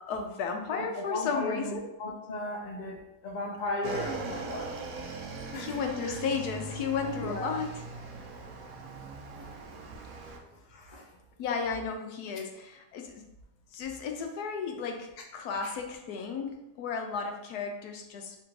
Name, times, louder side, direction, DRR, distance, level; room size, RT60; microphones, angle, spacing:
voice 1, 0.0-1.9 3.8-4.1 5.6-7.8 11.4-13.2 13.7-18.4, left 5 dB, 75° left, 4 dB, 1.1 m, -34 dB
voice 2, 0.7-4.8 5.5-5.7 6.0-6.2 7.2-7.5 9.4-9.5 10.7-11.0 15.6-15.7, left 2 dB, 60° left, 0 dB, 0.4 m, -36 dB
Motorcycle / Engine, 3.8-10.4, right 4 dB, 70° right, 1.0 m, -40 dB
3.4 x 2.5 x 4.5 m, 0.93 s
omnidirectional pair, 1.7 m